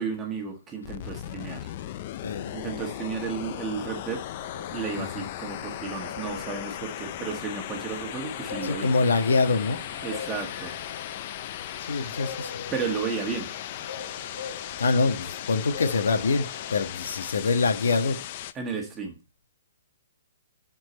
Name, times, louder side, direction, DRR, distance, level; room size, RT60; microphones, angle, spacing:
voice 1, 0.0-1.7 2.5-4.2 4.7-8.9 10.0-10.7 12.7-13.5 18.5-19.2, right 5 dB, 10° right, 1.4 m, -33 dB
sound 1, 0.8-18.5, left 12 dB, 35° left, 0.5 m, -37 dB
sound 2, 2.1-16.9, left 6 dB, 60° left, 3.0 m, -43 dB
voice 2, 2.2-2.6 5.0-5.3 8.6-9.8 11.9-12.6 14.8-18.2, left 4 dB, 90° left, 1.5 m, -25 dB
12.0 x 4.5 x 4.2 m
hypercardioid pair, 170°, 0 cm